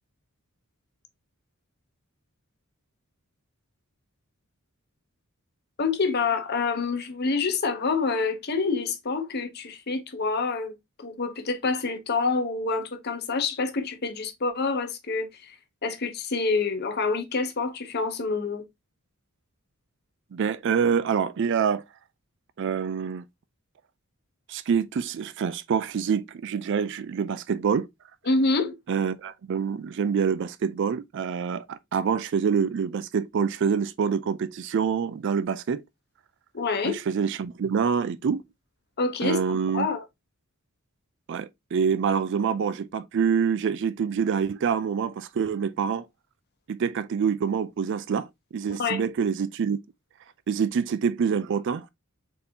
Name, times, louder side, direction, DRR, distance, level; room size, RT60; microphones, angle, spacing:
voice 1, 5.8-15.5 15.8-18.6 28.3-28.8 36.5-37.0 39.0-40.0 48.7-49.0, left 4 dB, 50° left, 0.9 m, -27 dB
voice 2, 20.3-21.8 22.6-23.2 24.5-27.9 28.9-35.8 36.8-38.4 39.2-39.9 41.3-46.1 46.7-48.3 48.5-49.8 50.5-51.9, right 6 dB, 55° right, 0.4 m, -26 dB
4.0 x 3.7 x 2.8 m
head